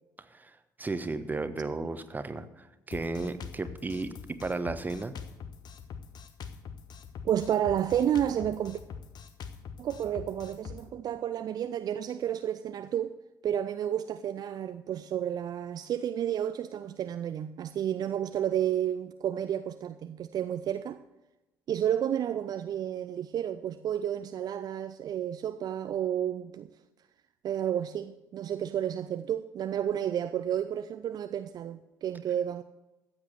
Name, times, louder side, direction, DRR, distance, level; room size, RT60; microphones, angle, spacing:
voice 1, 0.2-5.1, right 3 dB, 20° right, 1.2 m, -34 dB
Drum kit, 2.9-10.9, left 6 dB, 50° left, 1.1 m, -44 dB
voice 2, 7.2-8.8 9.8-13.1 13.4-21.0 21.7-26.7 27.4-32.6, right 10 dB, 45° right, 0.5 m, -31 dB
14.5 x 8.0 x 6.7 m
figure-of-eight pair, 50°, 9 cm